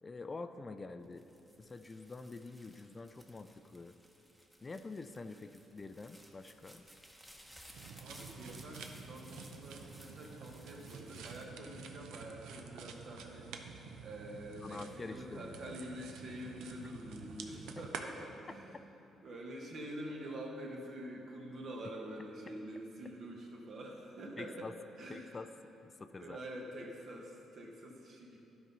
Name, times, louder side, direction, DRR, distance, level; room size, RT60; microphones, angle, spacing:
voice 1, 0.0-1.3 1.6-3.9 4.6-6.8 14.6-15.8 24.4-24.7 25.1-25.5 25.8-26.4, left 3 dB, 30° left, 9 dB, 0.3 m, -46 dB
sound 1, 1.0-12.4 12.9-13.5, equal, 5° right, 0.9 m, -59 dB
sound 2, 7.7-18.0, right 5 dB, 85° right, 0.5 m, -49 dB
voice 2, 8.0-18.8 19.2-25.4 26.2-28.4, right 1 dB, 60° right, -1 dB, 1.4 m, -46 dB
12.0 x 4.0 x 5.5 m, 2.9 s
cardioid pair, 90°, 0 cm